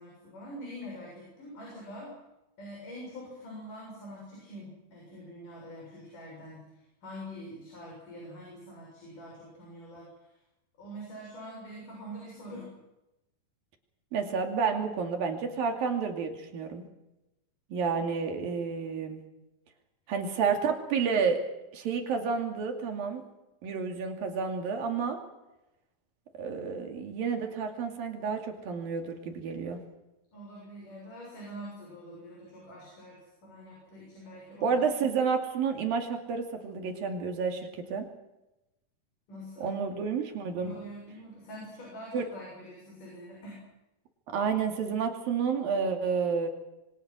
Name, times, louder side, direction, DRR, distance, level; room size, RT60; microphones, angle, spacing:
voice 1, 0.0-2.1 2.6-10.3 10.8-12.8 30.3-34.9 39.3-39.8 40.6-43.6, equal, 65° left, -2 dB, 8.6 m, -45 dB
voice 2, 14.1-16.8 17.7-19.2 20.1-21.4 21.7-23.2 23.6-25.2 26.4-29.8 34.6-38.1 39.6-40.7 42.1-42.2 44.3-46.5, right 5 dB, 85° right, 4 dB, 4.4 m, -30 dB
27.0 x 24.0 x 6.3 m, 0.94 s
omnidirectional pair, 4.0 m